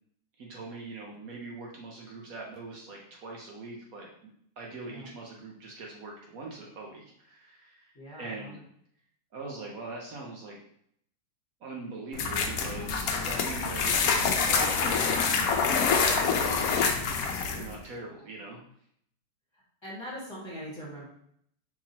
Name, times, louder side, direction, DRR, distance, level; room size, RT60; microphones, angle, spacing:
voice 1, 0.4-4.1 4.6-8.6 9.3-10.6 11.6-16.8 17.5-18.6, right 3 dB, 65° right, -2 dB, 1.2 m, -42 dB
voice 2, 7.9-8.6 19.5-21.1, equal, 15° left, -9 dB, 1.8 m, -42 dB
sound 1, 12.1-17.7, left 5 dB, 70° left, 1.0 m, -26 dB
4.6 x 3.7 x 2.8 m, 0.69 s
omnidirectional pair, 1.7 m